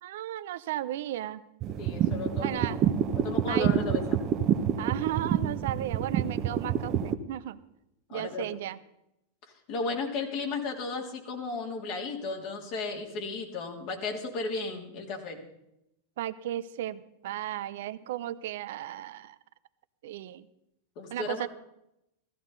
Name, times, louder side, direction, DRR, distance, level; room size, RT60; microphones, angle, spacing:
voice 1, 0.0-1.4 2.4-2.8 3.5-3.7 4.8-7.6 8.1-8.8 16.2-19.4 20.0-20.5 21.1-21.5, right 13 dB, 70° right, 14 dB, 0.6 m, -35 dB
sound 1, 1.6-7.1, right 9 dB, 40° right, 0.9 m, -27 dB
voice 2, 1.8-2.8 3.1-4.2 8.1-8.5 9.7-15.4 21.0-21.5, left 3 dB, 55° left, 1 dB, 2.9 m, -34 dB
15.0 x 14.5 x 4.0 m, 0.84 s
hypercardioid pair, 100°, 0 cm